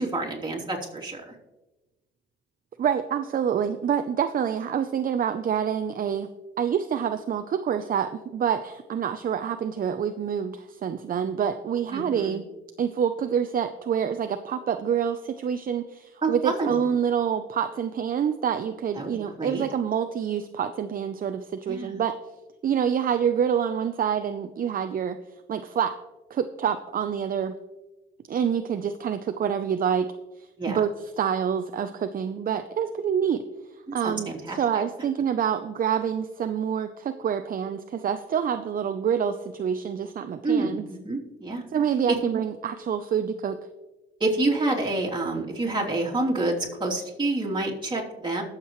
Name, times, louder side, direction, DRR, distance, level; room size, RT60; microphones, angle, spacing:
voice 1, 0.0-1.3 11.9-12.3 16.2-16.8 18.9-19.1 19.4-19.6 21.7-22.0 30.6-30.8 34.0-34.6 40.4-41.6 42.1-42.2 44.2-48.4, right 2 dB, 25° right, -3 dB, 3.0 m, -28 dB
voice 2, 2.8-6.3 6.6-12.4 12.8-22.2 22.6-25.2 25.5-26.0 26.3-27.6 28.3-30.1 30.4-33.4 33.9-40.8 41.7-43.6, right 8 dB, 45° right, 9 dB, 0.6 m, -27 dB
20.5 x 7.4 x 3.1 m, 1.1 s
cardioid pair, 90°, 20 cm